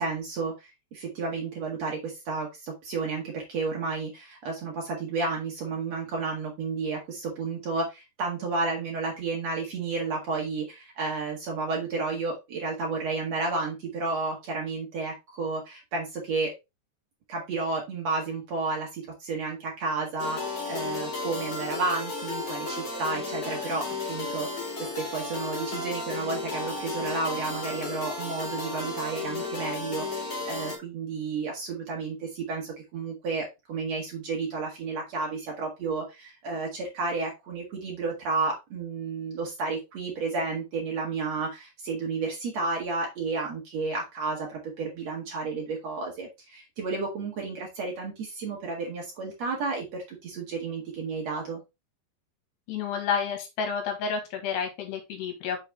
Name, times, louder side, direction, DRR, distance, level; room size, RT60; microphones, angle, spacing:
voice 1, 0.0-16.5 17.3-24.7 24.9-51.6, right 4 dB, 70° right, -1 dB, 1.6 m, -32 dB
sound 1, 20.2-30.8, left 3 dB, 40° left, 3.2 m, -33 dB
voice 2, 52.7-55.6, left 6 dB, 70° left, 4 dB, 3.4 m, -30 dB
6.3 x 5.0 x 3.3 m, 0.24 s
omnidirectional pair, 5.1 m